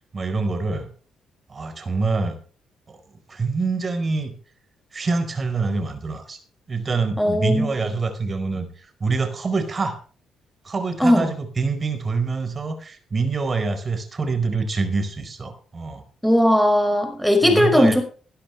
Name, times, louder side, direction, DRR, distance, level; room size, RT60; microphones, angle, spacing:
voice 1, 0.1-0.9 1.5-2.3 2.9-3.0 3.3-4.3 4.9-6.4 6.7-8.7 9.0-10.0 10.6-16.0 17.4-18.0, right 4 dB, 35° right, 8 dB, 4.5 m, -25 dB
voice 2, 7.2-7.7 11.0-11.3 16.2-18.0, left 1 dB, ahead, 5 dB, 5.5 m, -18 dB
18.5 x 12.0 x 3.4 m, 0.39 s
cardioid pair, 90°, 0 cm